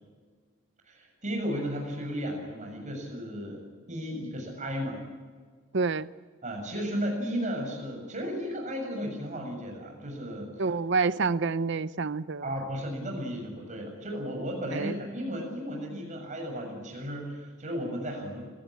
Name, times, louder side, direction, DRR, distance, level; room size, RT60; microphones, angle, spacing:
voice 1, 0.9-3.6 3.9-5.0 6.4-10.5 12.4-18.4, equal, 35° right, 2 dB, 7.2 m, -34 dB
voice 2, 5.7-6.1 10.6-12.5 14.7-14.9, right 4 dB, 55° right, 16 dB, 0.7 m, -27 dB
26.0 x 17.5 x 8.7 m, 1.5 s
head